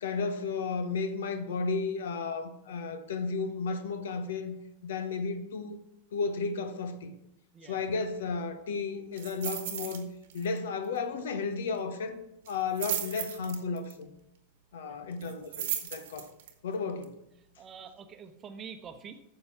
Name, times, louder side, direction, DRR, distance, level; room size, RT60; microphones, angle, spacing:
voice 1, 0.0-4.5 4.8-5.8 6.1-7.1 7.6-10.1 10.3-12.2 12.5-14.1 14.7-16.3 16.6-17.2, left 4 dB, 60° left, 0.9 m, -33 dB
voice 2, 7.5-7.9 14.9-15.3 17.6-19.2, right 6 dB, 25° right, 0.9 m, -47 dB
sound 1, 9.2-10.0 10.3-10.6 10.8-10.9 12.5-13.9 15.2-16.5 17.0-17.1, right 11 dB, 55° right, 1.2 m, -35 dB
9.6 x 6.8 x 5.9 m
figure-of-eight pair, 90°, 0 cm